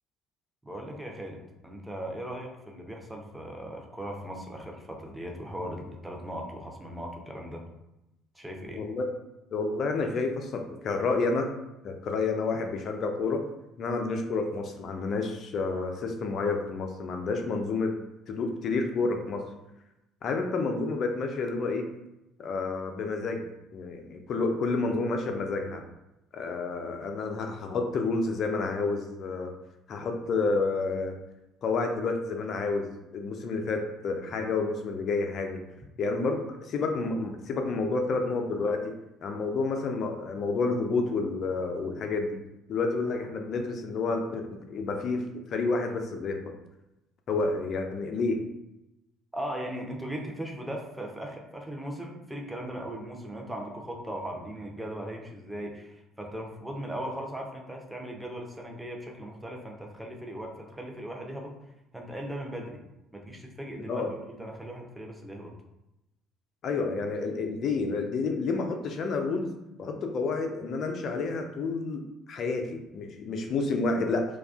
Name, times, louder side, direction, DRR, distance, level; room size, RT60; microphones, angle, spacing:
voice 1, 0.7-7.6 8.3-8.8 49.3-61.5 61.9-62.8 63.1-65.5, right 1 dB, 5° right, 0 dB, 0.5 m, -38 dB
voice 2, 8.7-9.0 9.5-11.5 11.8-13.4 13.8-17.9 18.3-19.4 20.2-21.9 22.4-23.5 23.7-25.8 26.3-29.5 29.9-31.1 31.6-32.9 33.1-35.6 36.0-38.9 39.2-42.4 42.7-45.2 45.5-46.4 47.3-48.4 63.9-64.1 66.6-69.5 69.8-74.3, left 3 dB, 45° left, 4 dB, 0.4 m, -29 dB
2.3 x 2.2 x 2.4 m, 0.92 s
figure-of-eight pair, 55°, 0 cm